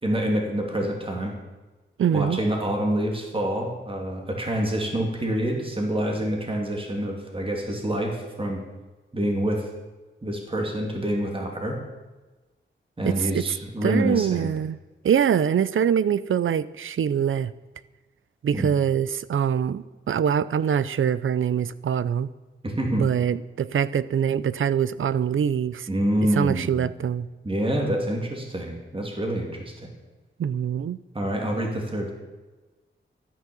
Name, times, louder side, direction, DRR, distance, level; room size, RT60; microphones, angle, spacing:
voice 1, 0.0-1.3 2.1-8.6 9.1-9.6 10.2-11.8 13.0-14.5 18.5-18.7 22.6-23.0 25.9-26.8 27.4-29.9 31.1-32.1, right 1 dB, 25° right, 1 dB, 2.6 m, -27 dB
voice 2, 2.0-2.4 13.0-13.4 13.8-14.8 15.0-17.5 18.4-22.3 22.9-25.9 26.3-27.3 30.4-31.0, right 8 dB, 85° right, 17 dB, 0.5 m, -24 dB
13.0 x 9.6 x 7.0 m, 1.2 s
wide cardioid pair, 110°, 20 cm